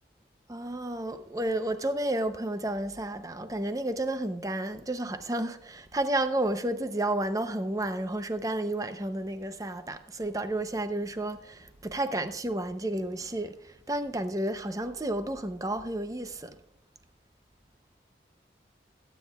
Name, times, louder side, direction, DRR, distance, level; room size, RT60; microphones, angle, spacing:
voice 1, 0.5-16.6, right 1 dB, 20° right, 0.6 m, -31 dB
20.5 x 9.2 x 2.3 m
head